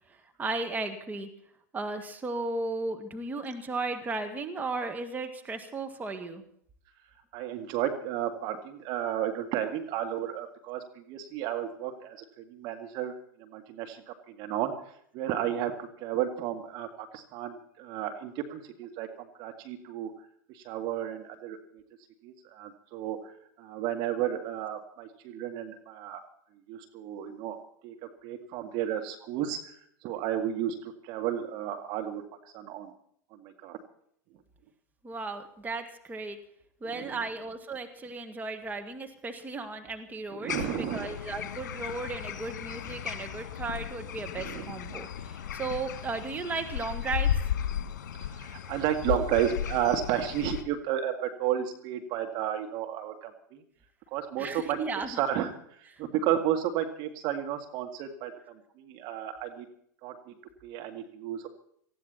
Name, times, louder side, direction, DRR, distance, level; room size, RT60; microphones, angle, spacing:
voice 1, 0.4-1.3 1.7-6.5 35.0-36.4 36.8-47.4 54.4-55.2, right 3 dB, 15° right, 5 dB, 2.1 m, -35 dB
voice 2, 7.3-13.1 13.4-14.0 14.3-14.7 15.1-20.1 20.5-21.6 22.2-23.3 23.6-26.2 26.7-27.6 27.8-29.6 30.0-32.2 32.5-32.9 33.3-33.8 36.9-37.1 40.4-41.1 44.4-44.7 48.2-53.6 54.1-54.8 55.1-55.5 56.0-58.3 58.8-59.7 60.0-60.1 60.6-61.5, right 10 dB, 50° right, 5 dB, 2.1 m, -32 dB
sound 1, 40.5-50.6, left 9 dB, 65° left, 1.7 m, -35 dB
19.0 x 15.0 x 4.3 m, 0.66 s
hypercardioid pair, 95°, 10 cm